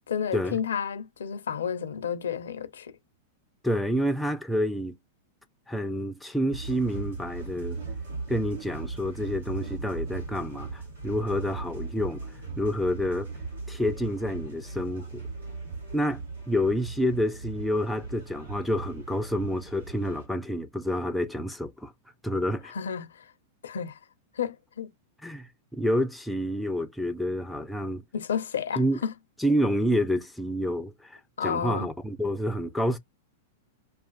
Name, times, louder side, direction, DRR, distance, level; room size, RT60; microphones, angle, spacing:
voice 1, 0.1-2.9 22.6-23.3 23.6-24.0 24.3-24.9 28.1-29.1 31.4-31.9, left 7 dB, 80° left, 0.5 m, -31 dB
voice 2, 3.6-5.0 5.7-7.8 8.3-13.3 13.7-15.2 15.9-21.9 22.2-22.7 25.2-28.0 28.8-29.0 29.4-33.0, equal, ahead, 0.4 m, -28 dB
sound 1, 6.5-20.3, right 4 dB, 85° right, 1.1 m, -38 dB
2.4 x 2.3 x 2.4 m
hypercardioid pair, 110°, 0 cm